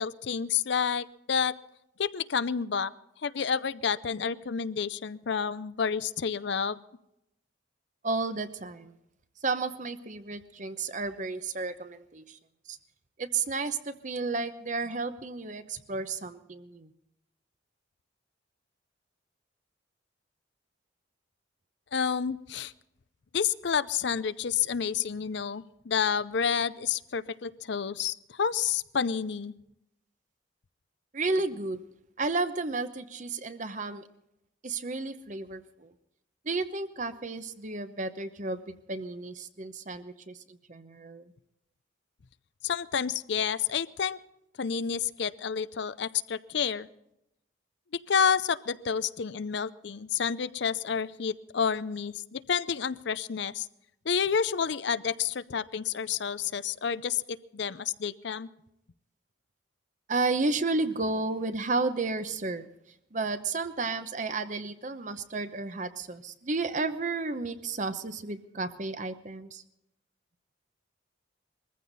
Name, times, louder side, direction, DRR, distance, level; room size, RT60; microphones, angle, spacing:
voice 1, 0.0-1.5 2.0-2.9 3.2-6.8 21.9-22.7 23.3-29.5 42.6-44.2 44.6-46.9 48.1-53.7 54.1-58.5, left 7 dB, 60° left, 16 dB, 0.5 m, -29 dB
voice 2, 8.0-9.0 9.4-12.4 12.7-12.8 13.2-16.9 31.1-31.8 32.2-34.0 34.6-35.9 36.4-41.3 60.1-62.7 63.1-69.6, right 3 dB, 40° right, 10 dB, 0.8 m, -32 dB
21.5 x 15.0 x 4.1 m, 0.82 s
head